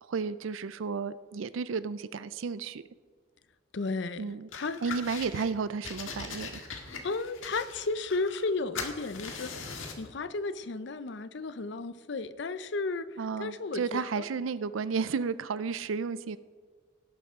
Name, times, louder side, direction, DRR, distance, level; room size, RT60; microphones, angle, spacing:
voice 1, 0.0-2.8 4.2-4.5 4.8-6.7 13.2-16.4, right 5 dB, 85° right, 15 dB, 0.5 m, -33 dB
voice 2, 3.7-5.0 7.0-9.6 10.0-14.3, left 3 dB, 60° left, 13 dB, 0.6 m, -34 dB
sound 1, 4.5-5.5 5.8-8.5 8.7-10.1, left 5 dB, 85° left, 1.7 m, -40 dB
18.0 x 10.5 x 3.7 m, 1.5 s
head